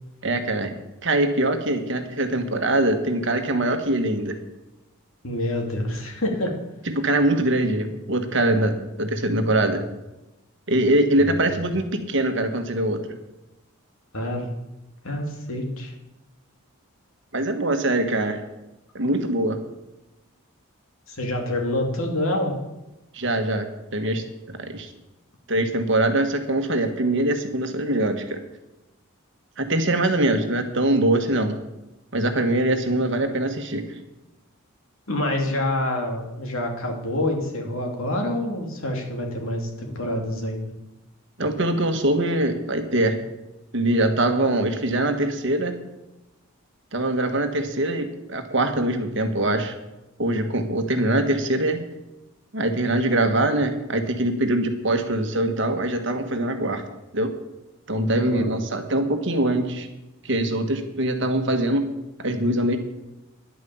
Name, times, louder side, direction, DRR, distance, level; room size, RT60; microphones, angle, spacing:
voice 1, 0.2-0.7 1.0-4.4 6.9-9.8 10.7-13.0 17.3-18.4 18.9-19.6 23.1-23.7 23.9-24.9 25.5-28.4 29.6-31.6 32.1-33.8 41.4-43.2 43.7-45.8 46.9-49.7 50.2-51.8 52.5-56.8 57.1-57.3 57.9-59.9 60.2-61.9 62.2-62.8, right 1 dB, 55° right, 6 dB, 1.4 m, -23 dB
voice 2, 5.2-6.5 11.2-11.6 14.1-14.5 15.0-15.9 21.1-22.5 35.1-40.7 54.2-54.3 58.2-58.6, left 1 dB, 70° left, 2 dB, 2.6 m, -27 dB
10.5 x 9.3 x 7.1 m, 0.98 s
head